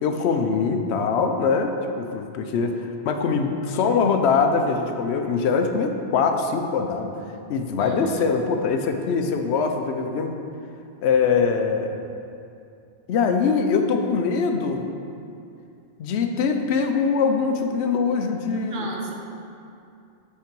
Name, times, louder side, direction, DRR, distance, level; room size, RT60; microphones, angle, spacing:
voice 1, 0.0-7.1 7.5-10.3 11.0-12.0 13.1-14.9 16.0-18.9, left 5 dB, 80° left, 5 dB, 0.8 m, -23 dB
voice 2, 7.7-8.3 18.7-19.1, right 2 dB, 55° right, 0 dB, 0.8 m, -34 dB
5.4 x 4.6 x 5.2 m, 2.6 s
omnidirectional pair, 1.1 m